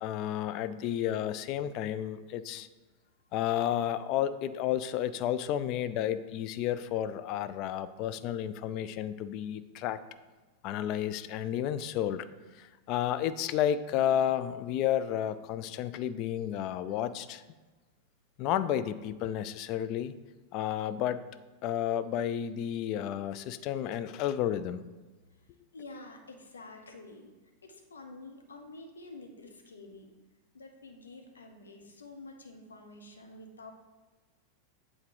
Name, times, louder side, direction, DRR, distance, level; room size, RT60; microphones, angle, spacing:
voice 1, 0.0-2.7 3.3-10.0 10.6-12.3 12.6-17.4 18.4-20.1 20.5-21.2 21.6-24.8, left 10 dB, 40° left, 13 dB, 0.3 m, -31 dB
voice 2, 25.7-27.3 27.6-30.1 30.5-33.7, left 2 dB, 70° left, 3 dB, 0.9 m, -48 dB
8.1 x 3.8 x 4.8 m, 1.2 s
figure-of-eight pair, 90°, 0 cm